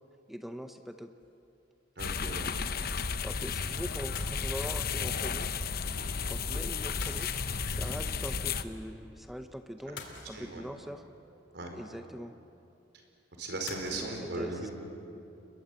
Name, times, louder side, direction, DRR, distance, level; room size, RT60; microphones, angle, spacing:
voice 1, 0.3-1.1 3.2-5.5 6.3-7.3 7.7-11.0 11.7-12.4 13.9-14.7, equal, ahead, 7 dB, 0.7 m, -42 dB
sound 1, 1.2-1.5 4.2-4.8 7.0-7.9 10.0-10.9 13.7-14.1, left 4 dB, 80° left, 3.1 m, -46 dB
sound 2, 2.0-8.6, left 5 dB, 55° left, 0.9 m, -33 dB
voice 2, 2.0-2.8 5.8-6.0 7.7-7.9 10.3-10.6 11.5-11.7 13.4-14.7, right 2 dB, 65° right, 3 dB, 4.8 m, -38 dB
29.5 x 22.0 x 8.2 m, 2.8 s
head